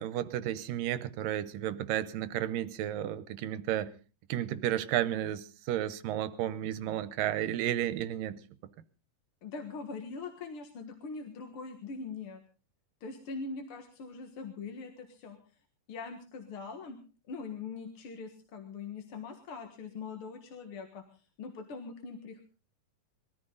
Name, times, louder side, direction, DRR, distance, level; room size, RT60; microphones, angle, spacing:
voice 1, 0.0-3.9 4.3-8.4, right 12 dB, 85° right, 14 dB, 2.6 m, -32 dB
voice 2, 9.4-12.4 13.0-15.4 15.9-17.0 17.3-22.4, left 4 dB, 50° left, 5 dB, 2.0 m, -42 dB
22.0 x 14.0 x 3.9 m, 0.35 s
omnidirectional pair, 3.8 m